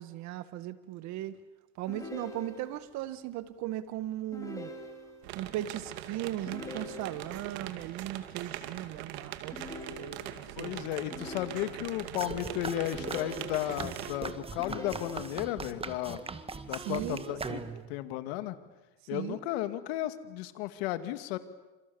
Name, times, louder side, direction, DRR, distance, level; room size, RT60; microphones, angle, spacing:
voice 1, 0.0-1.4 1.8-4.7 5.3-9.6 10.0-11.0 16.7-17.8 19.1-19.4, right 13 dB, 65° right, 12 dB, 1.9 m, -38 dB
sound 1, 1.9-2.9 4.3-5.4 6.5-7.5 9.5-10.5 11.1-12.1 12.9-14.0 14.6-15.6, left 2 dB, 10° left, 5.8 m, -44 dB
sound 2, 5.2-14.2, right 12 dB, 90° right, 2.3 m, -42 dB
voice 2, 10.6-16.2 16.7-18.6 19.1-21.4, left 14 dB, 85° left, 10 dB, 2.2 m, -34 dB
sound 3, 12.2-18.0, right 4 dB, 20° right, 1.8 m, -40 dB
29.0 x 27.0 x 7.2 m, 1.1 s
supercardioid pair, 110°, 30 cm